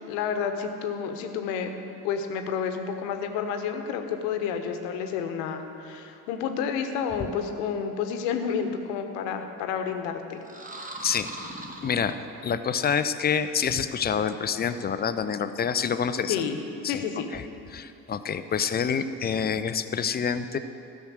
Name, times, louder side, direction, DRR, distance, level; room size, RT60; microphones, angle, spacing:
voice 1, 0.1-1.7 2.0-10.4 16.3-16.6 16.9-17.3, left 7 dB, 65° left, 6 dB, 1.2 m, -30 dB
sound 1, 10.4-12.7, right 1 dB, 15° right, 1.4 m, -40 dB
voice 2, 11.8-12.2 12.4-16.4 16.8-17.0 17.3-17.4 17.7-20.6, left 7 dB, 20° left, 11 dB, 0.5 m, -27 dB
15.0 x 6.2 x 6.4 m, 2.8 s
hypercardioid pair, 60°, 48 cm